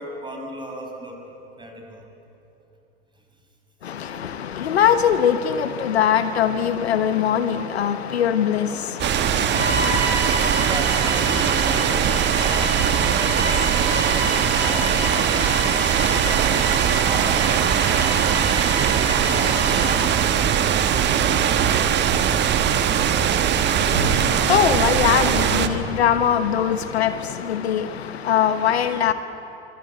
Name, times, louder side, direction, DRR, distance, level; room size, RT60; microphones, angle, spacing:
voice 1, 0.0-2.0 3.8-4.2 10.6-20.9 23.2-24.2, right 1 dB, 15° right, 6.2 m, -36 dB
voice 2, 3.8-10.1 23.7-29.1, left 9 dB, 70° left, 1.2 m, -22 dB
sound 1, 9.0-25.7, right 9 dB, 30° right, 1.4 m, -20 dB
Bowed string instrument, 9.4-20.0, equal, 90° right, 7.3 m, -29 dB
sound 2, 10.6-27.1, right 3 dB, 70° right, 3.9 m, -35 dB
25.5 x 24.0 x 8.2 m
figure-of-eight pair, 80°, 33 cm